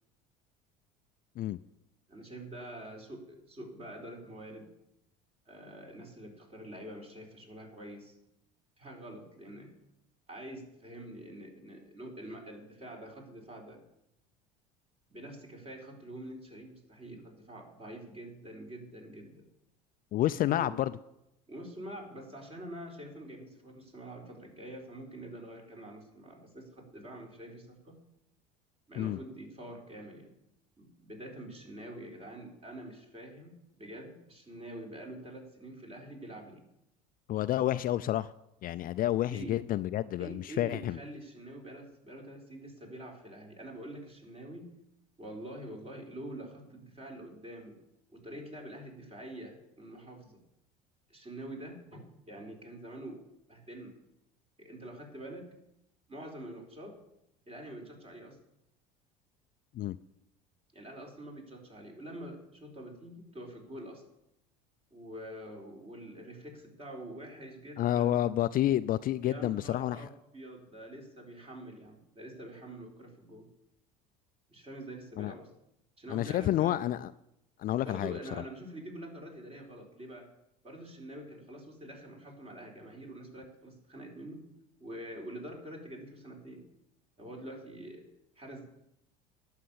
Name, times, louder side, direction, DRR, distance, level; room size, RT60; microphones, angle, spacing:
voice 1, 2.1-4.7 5.5-8.1 8.8-9.7 10.3-13.8 15.1-19.5 20.3-20.8 21.5-28.0 28.9-30.3 30.8-36.6 39.3-39.6 40.2-44.7 45.2-47.8 48.1-50.4 51.1-53.2 53.5-53.9 54.6-55.5 56.1-57.0 57.5-58.4 60.7-64.0 64.9-68.2 69.2-73.5 74.5-75.5 76.0-76.9 77.8-80.3 80.6-84.4 84.8-86.7 87.2-88.0 88.4-88.7, right 1 dB, 30° right, 1 dB, 4.2 m, -46 dB
voice 2, 20.1-20.9 29.0-29.2 37.3-38.3 38.6-41.0 59.7-60.0 67.8-70.1 75.2-75.3 76.1-77.1 77.6-78.2, left 13 dB, 45° left, 14 dB, 0.4 m, -29 dB
11.0 x 6.6 x 8.6 m, 0.83 s
hypercardioid pair, 80°, 21 cm